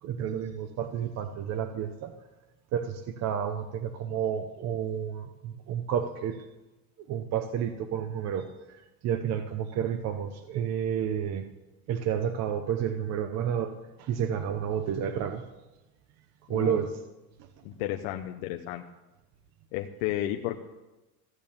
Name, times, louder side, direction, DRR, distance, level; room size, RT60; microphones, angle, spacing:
voice 1, 0.0-2.1 2.7-6.5 7.1-11.5 11.9-15.4 16.5-16.9, right 8 dB, 40° right, 7 dB, 0.8 m, -31 dB
voice 2, 17.6-18.8 19.7-20.6, left 13 dB, 85° left, 4 dB, 1.0 m, -32 dB
14.5 x 8.9 x 7.2 m, 1.1 s
cardioid pair, 165°, 41 cm